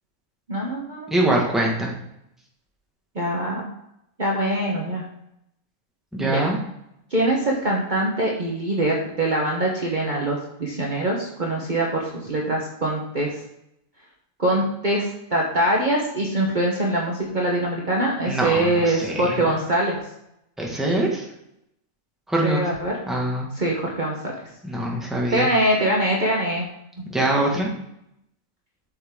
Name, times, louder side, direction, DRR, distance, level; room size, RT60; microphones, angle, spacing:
voice 1, 0.5-1.1 3.1-3.7 4.2-5.0 6.2-6.4 7.1-13.4 14.4-20.0 22.4-23.0 23.6-24.3 25.3-26.7, right 1 dB, 40° right, -2 dB, 1.2 m, -23 dB
voice 2, 1.1-1.9 6.1-6.6 18.3-19.6 20.6-21.3 22.3-22.7 23.1-23.5 24.6-25.5 27.1-27.7, right 1 dB, ahead, -2 dB, 1.5 m, -23 dB
7.7 x 6.5 x 3.7 m, 0.80 s
omnidirectional pair, 1.4 m